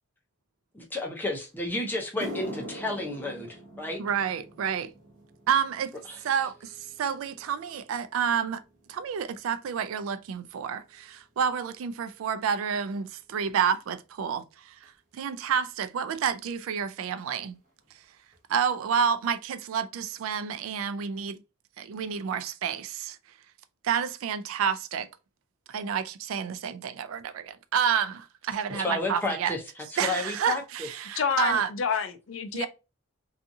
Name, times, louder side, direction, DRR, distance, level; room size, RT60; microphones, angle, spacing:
voice 1, 0.7-4.0 6.1-6.2 28.7-29.6 30.0-30.9, left 2 dB, 10° left, 0.6 m, -31 dB
sound 1, 1.5-1.6 2.0-10.5 10.8-11.2 12.0-12.1 14.8-14.9 16.6-16.7 16.8-17.1 17.4-17.9 18.3-18.4 18.9-19.0, equal, 35° right, 0.9 m, -45 dB
voice 2, 4.0-4.9 5.5-5.9 6.2-8.6 8.9-17.6 18.5-21.4 21.8-23.2 23.8-25.1 25.7-29.5 30.0-31.7 32.5-32.7, right 7 dB, 80° right, 0.3 m, -29 dB
voice 3, 31.2-32.7, left 6 dB, 70° left, 0.4 m, -28 dB
2.6 x 2.4 x 2.6 m
head